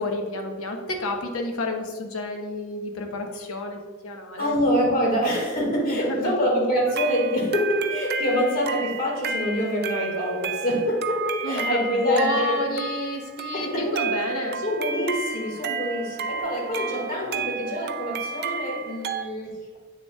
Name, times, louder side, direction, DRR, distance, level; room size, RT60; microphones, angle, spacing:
voice 1, 0.0-4.5 5.8-6.3 11.4-14.6 16.7-17.5, left 2 dB, 85° left, 3 dB, 1.0 m, -30 dB
voice 2, 4.4-12.9 13.5-14.0 14.5-19.8, equal, 45° left, -2 dB, 1.9 m, -25 dB
sound 1, 6.9-19.2, right 5 dB, 50° right, 0.4 m, -31 dB
8.3 x 6.8 x 2.4 m, 1.4 s
head